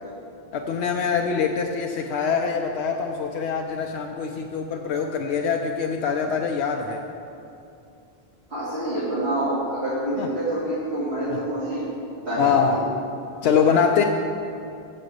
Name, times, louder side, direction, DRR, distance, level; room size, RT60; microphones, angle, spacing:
voice 1, 0.5-7.0 10.2-10.3 11.3-11.4 12.4-12.8 13.4-14.0, left 6 dB, 80° left, 2 dB, 0.8 m, -24 dB
voice 2, 8.5-11.8 12.1-12.8, right 1 dB, 80° right, -12 dB, 2.8 m, -27 dB
7.1 x 6.5 x 6.5 m, 2.7 s
omnidirectional pair, 1.1 m